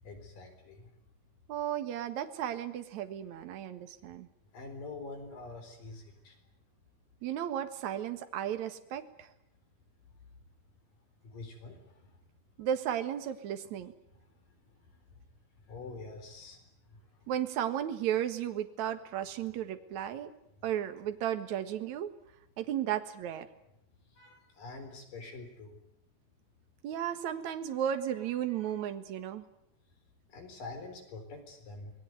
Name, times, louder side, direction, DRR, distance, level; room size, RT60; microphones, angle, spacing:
voice 1, 0.0-0.9 4.5-6.4 11.2-12.2 14.2-14.6 14.9-15.0 15.7-17.1 24.1-25.8 28.1-28.8 30.3-31.9, left 3 dB, 60° left, 6 dB, 5.6 m, -46 dB
voice 2, 1.5-4.3 7.2-9.3 12.6-13.9 17.3-20.3 20.6-22.1 22.6-23.5 26.8-29.4, right 10 dB, 55° right, 8 dB, 2.6 m, -34 dB
27.0 x 20.0 x 9.4 m, 0.78 s
omnidirectional pair, 4.5 m